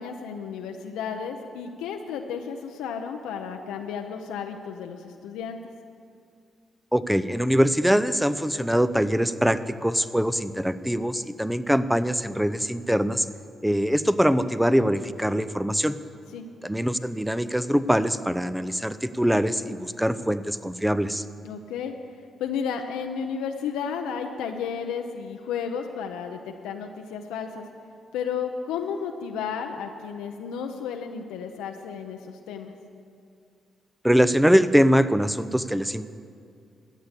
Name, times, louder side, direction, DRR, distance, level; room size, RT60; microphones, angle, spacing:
voice 1, 0.0-5.6 16.3-16.4 21.4-21.9 22.4-27.6 28.1-32.7, left 7 dB, 90° left, 3 dB, 0.7 m, -33 dB
voice 2, 6.9-13.3 13.6-16.0 16.6-21.2 34.0-36.1, equal, 5° right, 14 dB, 0.7 m, -23 dB
13.0 x 8.3 x 8.2 m, 2.4 s
supercardioid pair, 55°, 0 cm